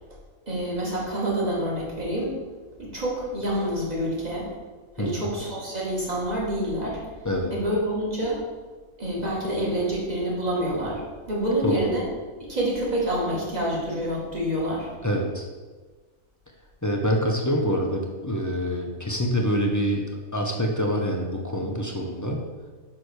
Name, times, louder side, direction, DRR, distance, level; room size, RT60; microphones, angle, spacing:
voice 1, 0.5-2.4 2.8-4.5 5.0-7.0 7.5-8.4 9.0-12.1 12.4-14.9, right 1 dB, 30° right, -4 dB, 2.1 m, -27 dB
voice 2, 15.0-15.5 16.8-20.1 20.3-22.4, equal, 15° left, 1 dB, 0.7 m, -26 dB
5.8 x 5.1 x 6.3 m, 1.4 s
omnidirectional pair, 1.5 m